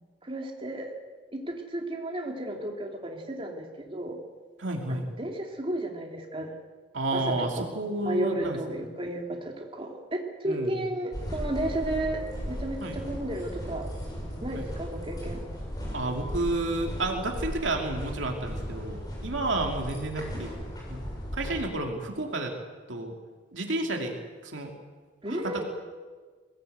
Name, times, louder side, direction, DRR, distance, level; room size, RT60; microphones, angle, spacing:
voice 1, 0.2-0.9 1.3-4.2 4.9-6.5 7.1-7.6 8.0-12.2 12.5-13.9 14.4-15.4 25.2-25.6, right 1 dB, 30° right, 1 dB, 2.7 m, -33 dB
voice 2, 4.6-5.1 6.9-8.8 10.4-10.7 12.8-13.0 14.5-14.7 15.9-20.6 20.9-21.1 21.3-22.5 22.9-23.1 23.5-24.2 24.4-24.7 25.3-25.6, right 2 dB, 90° right, 2 dB, 2.6 m, -31 dB
sound 1, 11.1-21.7, equal, 20° left, 6.8 m, -36 dB
22.5 x 16.0 x 8.1 m, 1.4 s
head